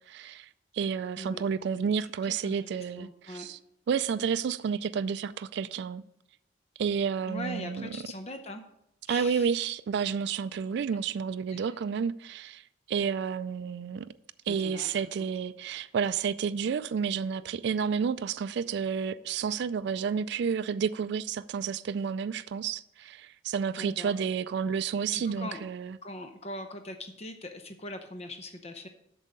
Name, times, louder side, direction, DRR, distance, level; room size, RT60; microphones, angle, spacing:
voice 1, 0.1-3.6 3.9-6.0 6.8-7.9 9.1-12.6 12.9-14.1 14.5-26.0, right 6 dB, 60° right, 0.3 m, -30 dB
voice 2, 2.0-3.5 7.3-8.6 9.1-9.7 11.5-11.8 14.5-15.0 23.7-24.1 25.1-25.7 26.0-28.9, left 1 dB, 35° left, 0.6 m, -41 dB
8.0 x 6.3 x 5.3 m
head